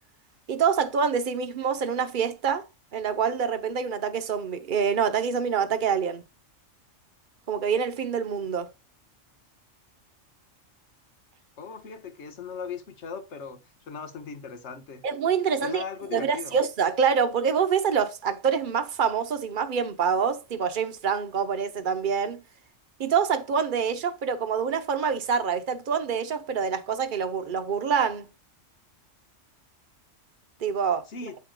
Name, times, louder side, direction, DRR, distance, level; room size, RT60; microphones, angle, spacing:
voice 1, 0.5-6.2 7.5-8.7 15.0-15.8 16.1-22.4 23.0-28.3 30.6-31.1, right 6 dB, 45° right, 1.0 m, -26 dB
voice 2, 11.6-13.6 13.9-15.0 15.6-16.6 31.1-31.4, left 6 dB, 65° left, 1.5 m, -38 dB
9.1 x 7.7 x 2.2 m
omnidirectional pair, 1.3 m